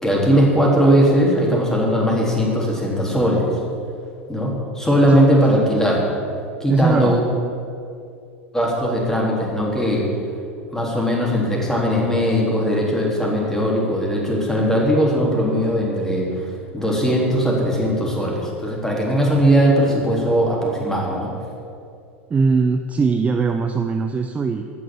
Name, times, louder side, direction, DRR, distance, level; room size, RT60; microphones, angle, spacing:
voice 1, 0.0-3.5 4.3-6.0 6.6-7.2 8.5-10.0 10.7-16.4 16.7-21.3, equal, 5° left, -3 dB, 3.7 m, -19 dB
voice 2, 5.1-5.4 6.7-7.2 22.3-24.6, right 4 dB, 20° right, 5 dB, 0.7 m, -20 dB
15.5 x 6.3 x 8.7 m, 2.4 s
figure-of-eight pair, 85°, 7 cm